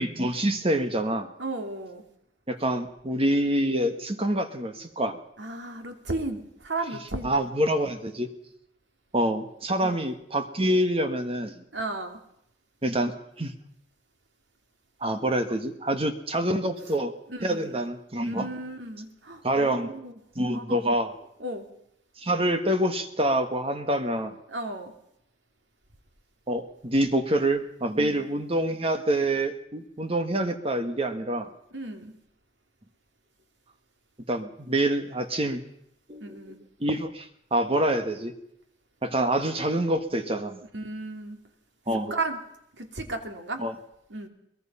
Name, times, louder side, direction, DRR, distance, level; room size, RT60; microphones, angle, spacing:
voice 1, 0.0-1.3 2.5-5.2 7.2-8.3 9.1-11.6 12.8-13.1 13.4-13.5 15.0-17.1 17.4-18.5 19.4-19.9 20.3-21.1 22.2-24.3 26.5-31.5 34.3-35.6 36.1-38.3 39.0-40.6 41.9-42.2 43.6-43.7, right 1 dB, 30° right, 8 dB, 1.5 m, -26 dB
voice 2, 1.4-2.0 5.4-7.3 9.8-10.0 11.7-12.2 17.3-17.8 18.2-20.1 20.5-20.8 21.4-21.7 24.5-24.9 28.0-28.2 31.7-32.2 36.2-36.6 40.7-41.4 42.1-42.4 42.8-43.6 44.1-44.3, right 2 dB, 85° right, 5 dB, 3.0 m, -34 dB
23.0 x 20.0 x 5.7 m, 0.77 s
head